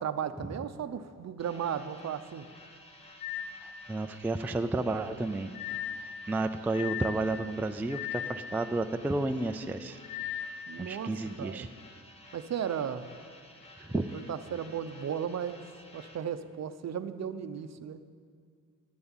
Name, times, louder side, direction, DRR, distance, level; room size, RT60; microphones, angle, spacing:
voice 1, 0.0-2.5 10.7-11.1 11.4-11.7 12.3-13.1 14.3-15.6 15.9-18.0, right 8 dB, 55° right, 11 dB, 0.7 m, -35 dB
sound 1, 1.4-16.2, left 1 dB, 15° left, 1.8 m, -54 dB
sound 2, 3.2-3.6 5.5-6.1 6.7-7.2 7.9-8.4 10.0-10.5, left 10 dB, 75° left, 1.5 m, -36 dB
voice 2, 3.6-5.7 6.0-10.4 10.8-11.7 13.8-14.1, right 2 dB, 5° right, 8 dB, 0.3 m, -32 dB
11.5 x 10.5 x 8.8 m, 2.1 s
wide cardioid pair, 170°, 33 cm